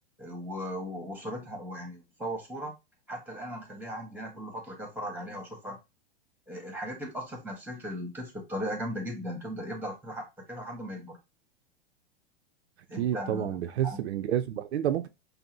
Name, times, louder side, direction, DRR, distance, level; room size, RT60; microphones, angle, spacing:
voice 1, 0.2-2.7 3.1-5.8 6.5-11.2 12.9-13.6 13.8-14.0, equal, 5° right, 1.4 m, -37 dB
voice 2, 13.0-15.1, right 11 dB, 80° right, 0.5 m, -29 dB
5.3 x 2.1 x 3.0 m
hypercardioid pair, 110°, 33 cm